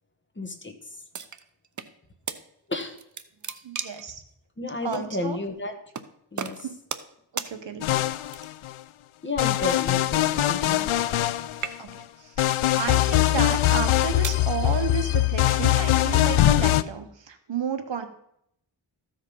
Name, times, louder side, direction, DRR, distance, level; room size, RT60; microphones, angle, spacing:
voice 1, 0.4-0.7 2.7-3.0 4.6-5.8 6.3-6.7 9.2-10.9, left 2 dB, 25° left, 6 dB, 1.4 m, -32 dB
sound 1, 1.1-1.9 2.3-2.4 2.8-4.1 4.9-5.1 5.9-6.1 6.4-7.1 7.4-7.5 8.3-8.7 9.7-11.3 11.5-12.1 12.8-13.1 13.8-14.4, right 6 dB, 40° right, 0.8 m, -36 dB
voice 2, 3.6-4.2 4.8-5.4 6.6-6.8 7.3-7.9 11.8-18.1, right 6 dB, 65° right, 8 dB, 1.3 m, -32 dB
sound 2, 7.8-8.7 9.4-11.9 12.4-16.8, left 14 dB, 85° left, 0.6 m, -22 dB
14.0 x 5.1 x 5.6 m, 0.73 s
wide cardioid pair, 90°, 48 cm